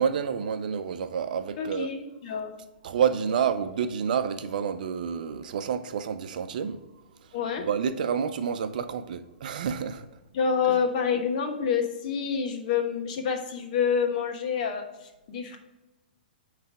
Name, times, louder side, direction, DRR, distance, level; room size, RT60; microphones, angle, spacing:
voice 1, 0.0-1.9 2.8-6.8 7.2-7.3 7.6-10.1 10.7-10.8, right 7 dB, 60° right, 0.6 m, -29 dB
voice 2, 1.6-2.5 7.3-7.7 10.3-15.6, left 6 dB, 50° left, 1.2 m, -28 dB
9.1 x 3.3 x 4.9 m
figure-of-eight pair, 115°, 5 cm